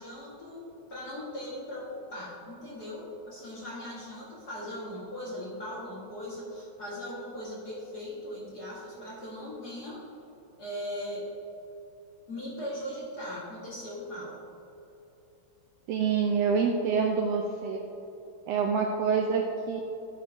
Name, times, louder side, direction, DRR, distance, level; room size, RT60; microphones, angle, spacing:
voice 1, 0.0-10.0 10.6-11.3 12.3-14.4, left 1 dB, 40° left, -6 dB, 1.6 m, -39 dB
voice 2, 15.9-17.8 18.5-19.8, right 5 dB, 80° right, 2 dB, 1.5 m, -26 dB
12.0 x 9.4 x 2.6 m, 3.0 s
omnidirectional pair, 3.4 m